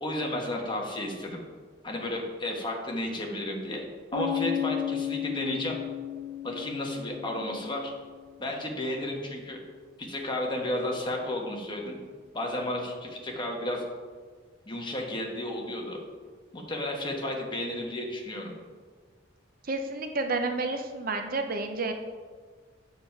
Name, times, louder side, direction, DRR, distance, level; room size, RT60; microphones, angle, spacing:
voice 1, 0.0-1.4 1.8-3.8 4.1-5.8 6.4-7.9 8.4-9.6 10.0-12.0 12.3-13.8 14.7-16.0 16.5-18.5, left 1 dB, 25° left, 0 dB, 1.4 m, -32 dB
sound 1, 4.1-8.0, left 10 dB, 45° left, 1.1 m, -33 dB
voice 2, 19.6-21.9, right 3 dB, 50° right, 6 dB, 0.7 m, -30 dB
8.1 x 7.3 x 4.6 m, 1.5 s
head